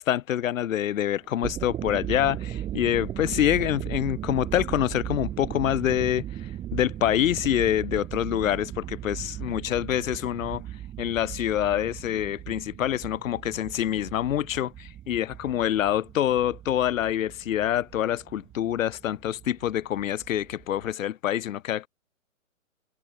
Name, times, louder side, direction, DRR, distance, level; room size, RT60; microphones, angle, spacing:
voice 1, 0.0-10.6 11.0-21.9, left 11 dB, 70° left, 0.6 m, -26 dB
sound 1, 1.2-20.9, right 12 dB, 10° right, 2.1 m, -37 dB
hypercardioid pair, 160°, 41 cm